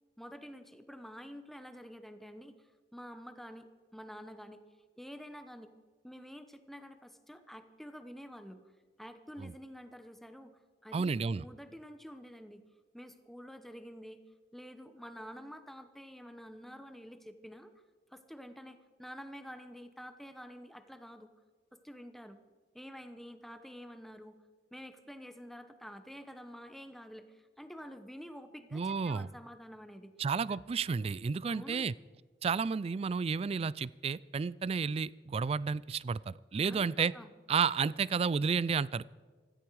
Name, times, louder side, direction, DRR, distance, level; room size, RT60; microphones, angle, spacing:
voice 1, 0.2-4.6 5.0-5.7 6.0-8.6 9.0-12.7 12.9-14.2 14.5-17.7 18.1-21.3 21.7-22.4 22.7-24.4 24.7-30.2 30.5-30.6 31.5-31.9 36.6-37.3, equal, ahead, 9 dB, 0.9 m, -49 dB
voice 2, 10.9-11.4 28.7-29.3 30.2-31.9 32.4-37.1 37.5-39.0, right 5 dB, 35° right, 22 dB, 0.3 m, -31 dB
16.0 x 14.0 x 4.7 m, 1.5 s
head